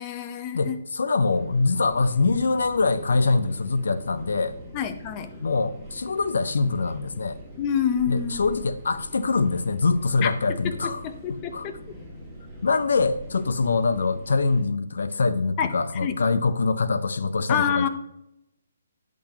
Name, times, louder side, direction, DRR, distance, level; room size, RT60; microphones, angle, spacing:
voice 1, 0.0-0.8 4.7-5.3 7.6-8.4 10.2-10.3 10.6-11.8 15.6-15.7 16.0-16.2 17.5-17.9, left 8 dB, 25° left, 9 dB, 0.7 m, -27 dB
voice 2, 0.5-4.5 5.4-7.4 8.1-11.0 11.5-11.7 12.6-17.9, left 4 dB, 75° left, 14 dB, 0.5 m, -24 dB
sound 1, 1.3-14.6, equal, ahead, 2.0 m, -43 dB
10.0 x 6.0 x 2.9 m, 0.84 s
hypercardioid pair, 150°, 0 cm